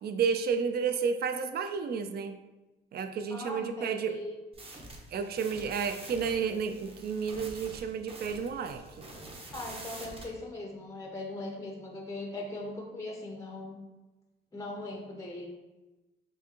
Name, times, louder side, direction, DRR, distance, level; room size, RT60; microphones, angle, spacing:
voice 1, 0.0-2.4 2.9-4.2 5.1-9.0, right 6 dB, 55° right, 8 dB, 0.4 m, -31 dB
voice 2, 3.3-4.4 9.5-13.8 14.5-15.5, left 2 dB, 15° left, 1 dB, 0.5 m, -40 dB
sound 1, 4.5-10.3, right 2 dB, 30° right, 0.8 m, -46 dB
4.7 x 2.6 x 2.9 m, 1.1 s
cardioid pair, 90°, 20 cm